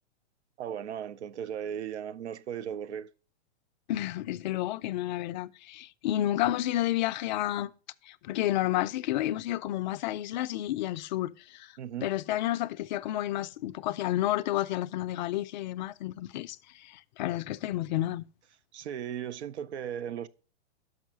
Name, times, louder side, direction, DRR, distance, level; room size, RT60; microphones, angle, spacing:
voice 1, 0.6-3.1 11.8-12.1 18.7-20.3, right 9 dB, 75° right, 0.7 m, -36 dB
voice 2, 3.9-7.7 8.0-11.7 12.0-18.2, left 14 dB, 45° left, 0.4 m, -31 dB
6.1 x 5.6 x 6.2 m
hypercardioid pair, 130°, 34 cm